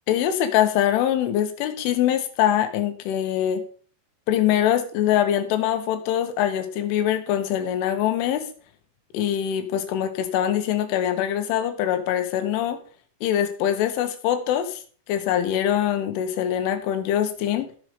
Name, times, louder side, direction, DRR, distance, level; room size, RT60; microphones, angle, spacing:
voice 1, 0.1-3.6 4.3-8.5 9.1-12.8 13.2-14.8 15.1-17.7, left 10 dB, 90° left, 8 dB, 3.8 m, -23 dB
14.5 x 6.3 x 5.1 m, 0.43 s
omnidirectional pair, 5.4 m